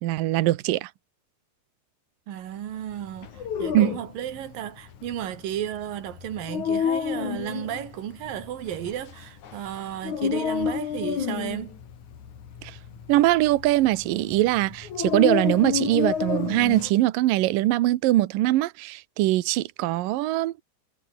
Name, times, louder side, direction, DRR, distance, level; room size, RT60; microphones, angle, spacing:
voice 1, 0.0-0.9 3.7-3.9 12.6-12.8 13.1-20.5, right 16 dB, 90° right, 1.9 m, -22 dB
voice 2, 2.3-11.8, right 11 dB, 60° right, 3.0 m, -34 dB
Dog, 3.2-16.9, left 7 dB, 45° left, 3.4 m, -30 dB
omnidirectional pair, 5.4 m